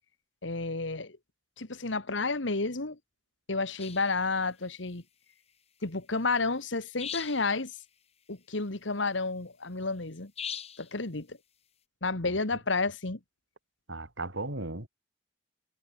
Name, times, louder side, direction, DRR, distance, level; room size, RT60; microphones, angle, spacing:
voice 1, 0.4-1.2 1.6-3.0 3.5-5.0 5.8-7.7 8.3-10.3 10.8-11.4 12.0-13.2, left 3 dB, 80° left, 1.9 m, -31 dB
sound 1, 3.8-4.1 7.0-7.6 10.4-10.9, left 8 dB, 35° left, 1.9 m, -39 dB
voice 2, 13.9-14.9, right 2 dB, 80° right, 4.3 m, -36 dB
head